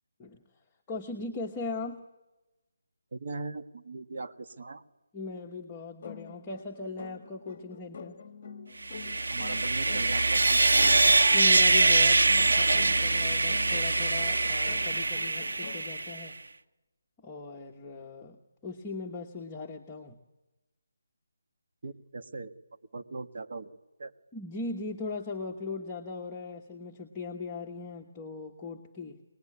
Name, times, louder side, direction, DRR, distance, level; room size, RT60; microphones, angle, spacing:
voice 1, 0.9-2.0 5.1-8.2 11.3-16.3 17.2-20.2 24.3-29.2, left 3 dB, 10° left, 0 dB, 1.1 m, -39 dB
voice 2, 3.1-4.8 9.3-10.8 21.8-22.5 22.9-24.1, right 3 dB, 45° right, 5 dB, 1.6 m, -40 dB
sound 1, 6.0-16.0, left 5 dB, 30° left, 1.3 m, -47 dB
Sawing, 8.8-16.3, right 2 dB, 85° right, 1.4 m, -24 dB
24.5 x 20.0 x 9.8 m, 1.1 s
hypercardioid pair, 170°, 0 cm